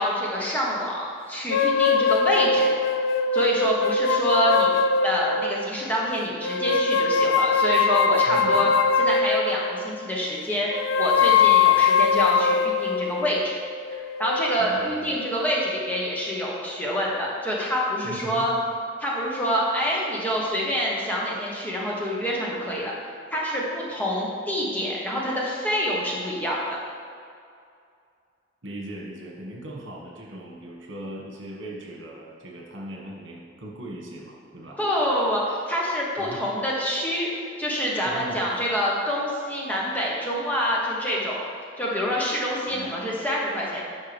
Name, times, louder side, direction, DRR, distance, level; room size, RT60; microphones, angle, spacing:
voice 1, 0.0-2.7 3.3-8.7 9.0-13.6 13.9-18.5 19.0-22.9 23.3-26.8 34.8-41.4 41.8-43.8, equal, 10° left, -5 dB, 1.1 m, -26 dB
sound 1, 1.5-5.7 6.4-9.9 10.7-15.1, left 5 dB, 80° left, 0.4 m, -22 dB
voice 2, 8.3-8.7 14.6-15.2 18.0-18.5 28.6-34.8 36.2-36.4 38.0-38.4 42.7-42.9, right 1 dB, 80° right, -2 dB, 1.5 m, -39 dB
9.6 x 5.6 x 3.4 m, 2.4 s
head